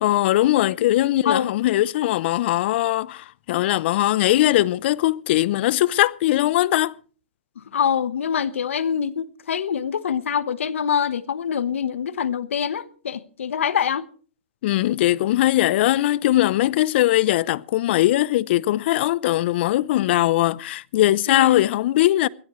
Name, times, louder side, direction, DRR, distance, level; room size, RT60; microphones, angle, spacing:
voice 1, 0.0-6.9 14.6-22.3, left 15 dB, 55° left, 0.6 m, -20 dB
voice 2, 7.6-14.1 21.3-21.6, left 8 dB, 80° left, 1.2 m, -25 dB
22.0 x 17.5 x 3.2 m
hypercardioid pair, 120°, 7 cm